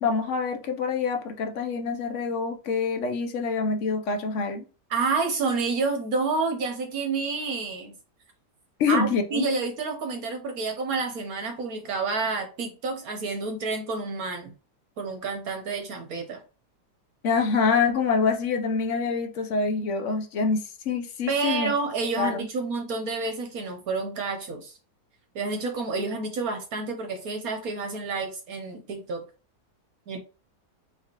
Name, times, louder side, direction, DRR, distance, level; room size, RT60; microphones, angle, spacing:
voice 1, 0.0-4.6 8.8-9.5 17.2-20.6 20.9-21.7 22.2-22.5, left 5 dB, 60° left, 0.8 m, -26 dB
voice 2, 4.9-7.9 8.9-14.5 15.0-16.4 21.3-24.8 25.3-29.2 30.1-30.2, right 4 dB, 65° right, 1.1 m, -29 dB
4.1 x 4.0 x 2.9 m
omnidirectional pair, 1.8 m